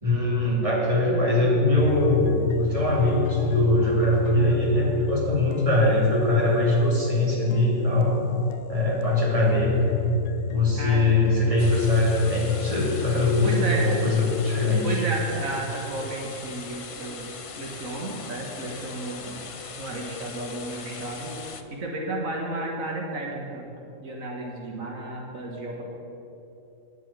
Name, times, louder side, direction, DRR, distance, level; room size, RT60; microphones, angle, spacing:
voice 1, 0.0-8.2 8.7-10.0 10.4-15.0, left 2 dB, 25° right, -4 dB, 2.5 m, -22 dB
sound 1, 1.8-14.3, left 8 dB, 70° left, 0.9 m, -34 dB
sound 2, 11.6-21.6, left 5 dB, 50° left, 0.3 m, -40 dB
voice 2, 13.4-13.9 14.8-17.3 17.6-19.4 19.8-21.3 21.7-23.7 24.0-25.8, right 2 dB, 80° right, -1 dB, 1.9 m, -32 dB
9.9 x 7.9 x 8.1 m, 2.9 s
omnidirectional pair, 1.4 m